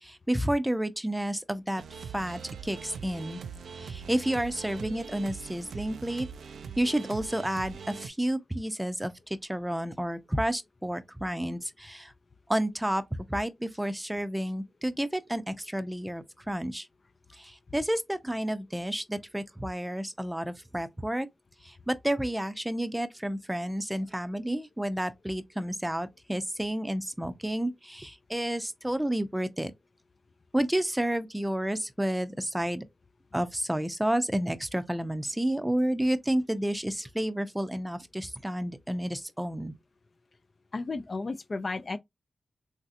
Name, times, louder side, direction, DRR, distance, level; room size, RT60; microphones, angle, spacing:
voice 1, 0.0-1.8 2.1-3.4 3.8-6.3 6.8-12.1 12.5-13.0 13.3-16.9 17.3-21.3 21.6-29.7 30.5-32.8 33.3-39.7, right 1 dB, 10° right, 0.5 m, -30 dB
sound 1, 1.8-8.1, right 6 dB, 90° right, 0.3 m, -42 dB
voice 2, 40.7-42.0, left 3 dB, 50° left, 0.3 m, -33 dB
3.2 x 2.7 x 2.5 m
cardioid pair, 50°, 0 cm